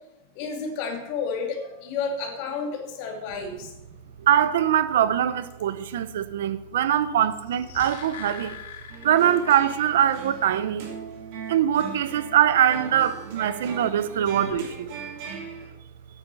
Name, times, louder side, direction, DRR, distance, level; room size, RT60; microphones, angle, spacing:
voice 1, 0.4-3.7, left 5 dB, 45° left, 2.5 m, -31 dB
voice 2, 4.2-8.6 9.0-10.9 11.5-14.9, right 10 dB, 80° right, 0.8 m, -22 dB
sound 1, 7.3-9.8 10.1-10.2, left 7 dB, 85° left, 3.6 m, -41 dB
sound 2, 8.9-15.7, right 5 dB, 50° right, 2.9 m, -39 dB
9.3 x 8.2 x 6.9 m
supercardioid pair, 160°, 0 cm